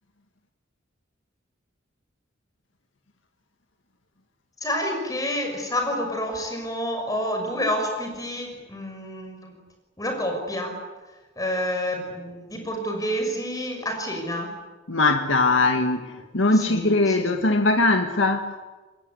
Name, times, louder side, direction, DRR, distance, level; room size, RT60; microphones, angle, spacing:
voice 1, 4.6-9.6 10.0-10.8 11.4-14.5 16.6-17.4, equal, 20° left, 4 dB, 6.4 m, -29 dB
voice 2, 14.9-18.5, left 2 dB, 90° left, 5 dB, 1.9 m, -21 dB
28.0 x 21.0 x 9.6 m, 1.2 s
head